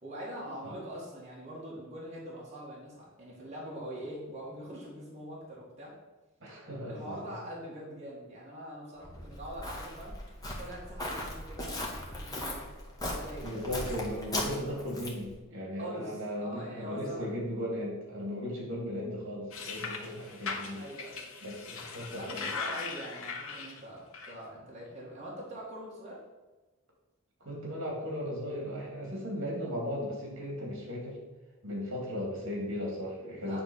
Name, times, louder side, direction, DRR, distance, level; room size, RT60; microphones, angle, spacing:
voice 1, 0.0-5.9 6.9-10.2 10.6-12.7 13.0-13.7 14.6-14.8 15.8-17.3 20.8-21.2 22.1-26.2 33.4-33.6, right 1 dB, 30° right, -6 dB, 2.0 m, -43 dB
voice 2, 6.4-7.3 13.4-20.8 21.4-22.5 27.4-31.2 31.6-33.6, equal, 65° right, -2 dB, 2.4 m, -37 dB
Walk footsteps, 9.0-15.3, left 1 dB, 20° left, 1.3 m, -38 dB
sound 1, 19.5-23.8 24.1-24.3, left 4 dB, 85° left, 1.1 m, -39 dB
8.7 x 3.5 x 6.3 m, 1.2 s
head